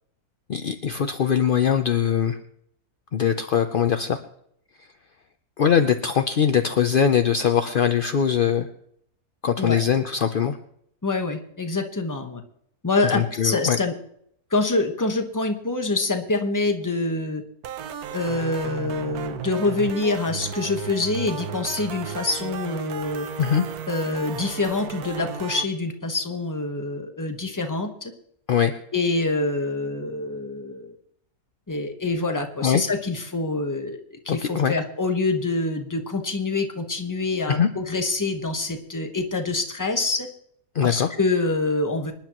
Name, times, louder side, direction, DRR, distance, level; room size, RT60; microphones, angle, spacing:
voice 1, 0.5-2.4 3.1-4.2 5.6-8.7 9.4-10.6 13.0-13.8 23.4-23.6 28.5-28.7 32.6-32.8 34.3-34.7 37.5-37.7 40.7-41.1, left 8 dB, 55° left, 7 dB, 0.6 m, -21 dB
voice 2, 11.0-12.4 12.8-13.9 14.5-17.4 18.1-23.3 23.9-28.1 28.9-31.0 31.7-40.3 40.8-42.1, left 3 dB, 15° left, 5 dB, 1.0 m, -26 dB
sound 1, 17.6-25.6, right 8 dB, 75° right, 1.3 m, -34 dB
26.0 x 10.0 x 3.0 m, 0.71 s
omnidirectional pair, 1.6 m